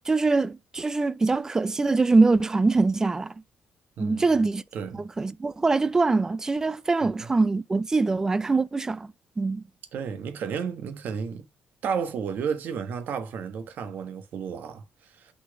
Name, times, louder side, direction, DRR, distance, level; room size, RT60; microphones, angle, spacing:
voice 1, 0.1-3.3 4.0-4.6 5.2-9.6, right 3 dB, 15° right, 0.4 m, -23 dB
voice 2, 4.0-4.4 4.7-5.0 7.2-7.3 9.9-11.4 11.8-15.3, right 6 dB, 60° right, 1.3 m, -32 dB
5.9 x 4.1 x 5.0 m
cardioid pair, 150°, 4 cm